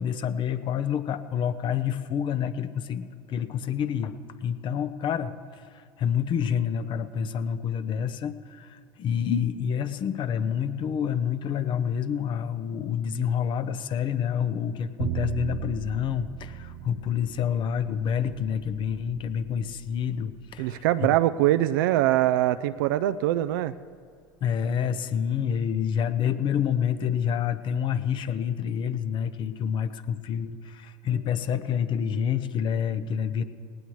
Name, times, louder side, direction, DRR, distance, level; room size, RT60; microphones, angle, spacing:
voice 1, 0.0-21.2 24.4-33.4, left 8 dB, 45° left, 12 dB, 0.8 m, -28 dB
Bowed string instrument, 15.0-21.2, right 10 dB, 55° right, 0.8 m, -38 dB
voice 2, 20.6-23.7, right 14 dB, 75° right, 11 dB, 0.4 m, -23 dB
18.5 x 18.5 x 3.2 m, 2.1 s
hypercardioid pair, 85°, 11 cm